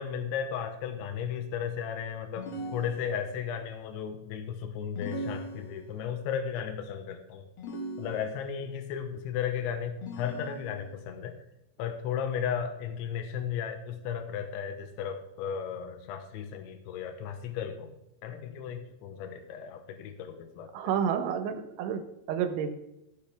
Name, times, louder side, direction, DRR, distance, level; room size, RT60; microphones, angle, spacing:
voice 1, 0.0-7.5 8.0-11.4 11.8-18.0 18.2-20.7, left 8 dB, 90° left, 7 dB, 3.3 m, -35 dB
sound 1, 2.4-3.5 5.0-6.1 7.6-8.6 10.0-11.0, equal, 70° left, 1.2 m, -40 dB
voice 2, 20.7-22.7, right 8 dB, 90° right, 8 dB, 3.4 m, -30 dB
15.5 x 8.8 x 3.4 m, 0.89 s
omnidirectional pair, 5.2 m